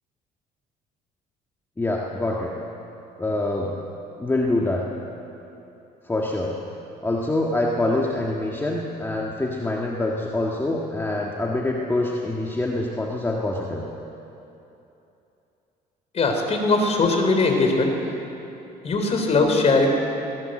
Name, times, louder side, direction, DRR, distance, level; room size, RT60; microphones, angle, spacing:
voice 1, 1.8-2.5 3.2-3.7 4.2-4.9 6.0-6.5 7.0-13.8, left 2 dB, 15° left, -2 dB, 1.7 m, -25 dB
voice 2, 16.1-17.9 18.8-19.9, left 3 dB, 40° left, 3 dB, 3.8 m, -20 dB
19.5 x 17.5 x 7.8 m, 2.9 s
cardioid pair, 110°, 17 cm